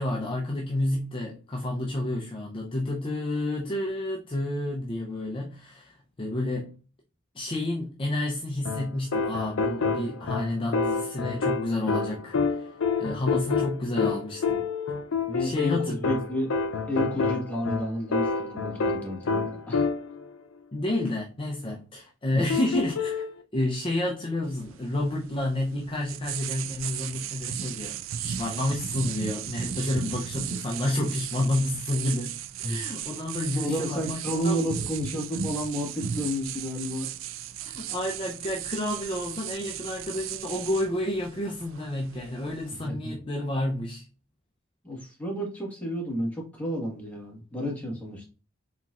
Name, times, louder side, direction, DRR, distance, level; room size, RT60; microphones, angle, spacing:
voice 1, 0.0-6.7 7.3-14.7 15.4-16.0 20.7-23.3 23.5-34.8 37.6-44.1, left 1 dB, 25° left, 0.6 m, -30 dB
sound 1, 8.6-20.3 22.5-23.3, left 4 dB, 80° left, 0.6 m, -28 dB
voice 2, 15.3-16.5 16.9-19.9 22.3-22.4 32.6-32.8 33.5-37.1 42.8-43.2 44.8-48.3, equal, 5° left, 1.5 m, -31 dB
sound 2, 24.4-42.9, right 9 dB, 70° right, 0.4 m, -36 dB
4.4 x 4.1 x 2.4 m
head